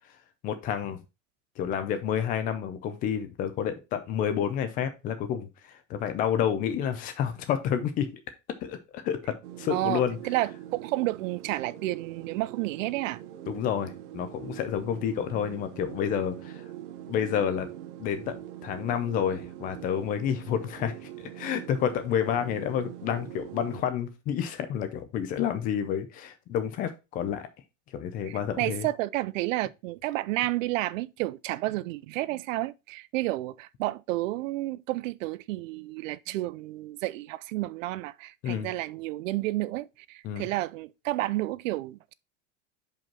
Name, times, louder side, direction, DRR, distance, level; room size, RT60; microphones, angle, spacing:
voice 1, 0.4-1.0 1.6-8.1 8.6-10.2 13.5-16.6 17.1-17.7 18.0-27.5 27.9-28.9 38.4-38.7 40.2-40.4, left 9 dB, 25° left, 0.5 m, -29 dB
sound 1, 9.4-23.8, right 12 dB, 65° right, 1.1 m, -43 dB
voice 2, 9.7-13.2 28.3-42.1, right 17 dB, 85° right, 0.6 m, -31 dB
5.6 x 5.3 x 4.5 m
supercardioid pair, 180°, 38 cm